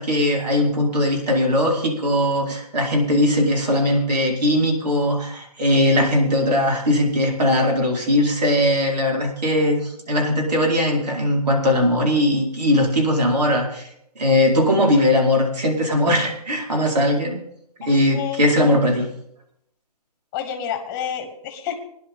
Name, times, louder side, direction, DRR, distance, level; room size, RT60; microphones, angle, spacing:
voice 1, 0.0-13.9 14.2-17.4 17.8-19.1, left 1 dB, 85° right, 0 dB, 4.7 m, -19 dB
voice 2, 17.8-18.4 20.3-21.8, left 9 dB, 15° left, 6 dB, 1.4 m, -29 dB
20.0 x 11.0 x 3.7 m, 0.74 s
hypercardioid pair, 170°, 20 cm